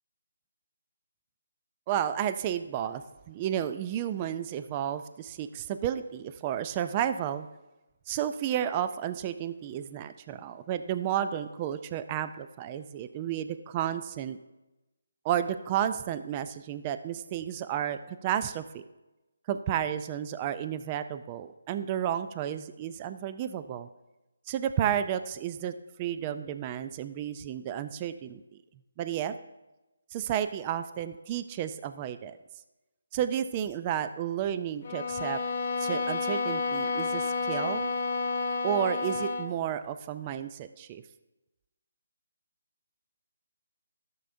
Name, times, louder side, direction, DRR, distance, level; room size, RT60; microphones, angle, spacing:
voice 1, 1.9-3.0 3.3-7.5 8.1-14.4 15.2-18.8 19.5-23.9 24.5-28.4 29.0-29.3 30.1-32.4 33.1-35.4 35.8-37.9 38.6-41.0, right 10 dB, 25° right, 11 dB, 0.3 m, -32 dB
sound 1, 34.8-39.6, left 4 dB, 45° left, 0.5 m, -30 dB
13.5 x 6.9 x 2.6 m, 1.0 s
hypercardioid pair, 160°, 0 cm